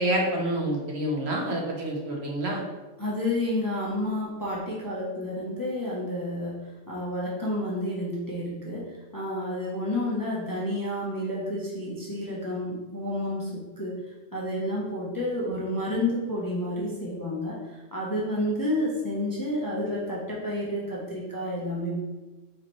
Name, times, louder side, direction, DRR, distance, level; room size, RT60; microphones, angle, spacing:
voice 1, 0.0-2.6, right 1 dB, 65° right, -1 dB, 1.1 m, -27 dB
voice 2, 3.0-6.6 6.9-13.9 14.3-22.0, left 1 dB, 20° left, -6 dB, 0.6 m, -30 dB
5.0 x 3.0 x 3.0 m, 1.2 s
omnidirectional pair, 1.2 m